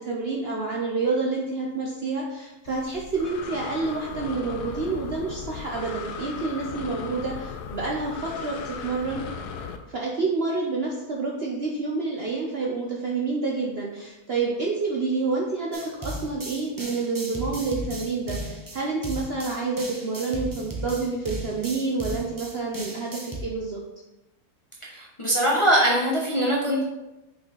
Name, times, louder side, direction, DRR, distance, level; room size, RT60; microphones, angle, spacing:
voice 1, 0.0-9.2 9.9-23.8, right 3 dB, 50° right, -2 dB, 0.8 m, -28 dB
Breathing, 2.7-9.8, left 6 dB, 80° left, 1.2 m, -37 dB
sound 1, 15.7-23.4, right 1 dB, 20° right, 0.6 m, -36 dB
voice 2, 24.9-26.8, right 1 dB, 25° left, -4 dB, 0.8 m, -22 dB
5.6 x 4.1 x 4.0 m, 0.98 s
omnidirectional pair, 1.7 m